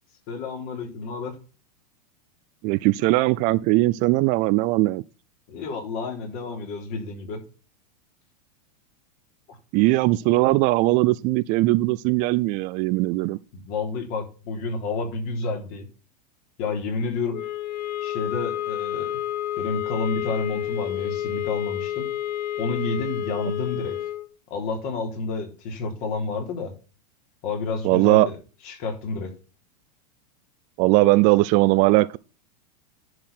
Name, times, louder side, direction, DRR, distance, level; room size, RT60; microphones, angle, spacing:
voice 1, 0.3-1.4 5.5-7.4 9.5-9.6 13.5-15.9 16.6-17.4 18.0-19.2 19.6-22.1 22.6-24.0 24.5-26.7 27.4-28.4 28.6-29.3, left 4 dB, 45° left, 3.4 m, -30 dB
voice 2, 2.6-5.0 9.7-13.4 27.8-28.3 30.8-32.2, right 20 dB, 40° right, 0.5 m, -19 dB
sound 1, 17.3-24.3, left 12 dB, 80° left, 0.9 m, -30 dB
10.5 x 4.8 x 5.8 m
supercardioid pair, 140°, 21 cm